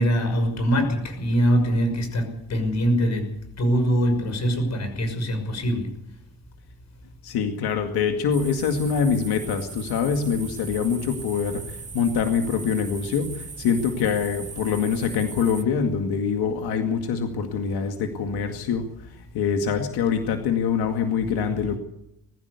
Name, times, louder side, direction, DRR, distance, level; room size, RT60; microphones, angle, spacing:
voice 1, 0.0-3.2 3.6-5.9 21.2-21.3 21.6-21.7, equal, 45° left, 7 dB, 5.9 m, -23 dB
voice 2, 7.2-21.8, left 6 dB, 90° left, 5 dB, 2.2 m, -25 dB
sound 1, 8.3-15.6, right 4 dB, 20° right, 1.0 m, -39 dB
21.0 x 15.0 x 8.3 m, 0.81 s
cardioid pair, 130°, 37 cm